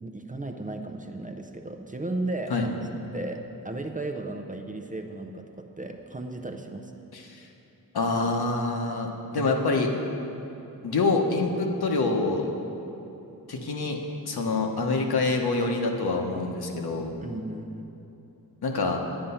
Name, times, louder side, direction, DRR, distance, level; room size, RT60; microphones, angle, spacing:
voice 1, 0.0-2.5 3.1-6.9 17.2-17.9, right 2 dB, 20° right, 4 dB, 0.6 m, -35 dB
voice 2, 7.1-7.5 7.9-9.9 10.8-12.5 13.5-14.0 14.2-17.1 18.6-19.0, left 3 dB, 75° left, 2 dB, 1.2 m, -26 dB
10.0 x 8.9 x 5.6 m, 3.0 s
wide cardioid pair, 135°, 38 cm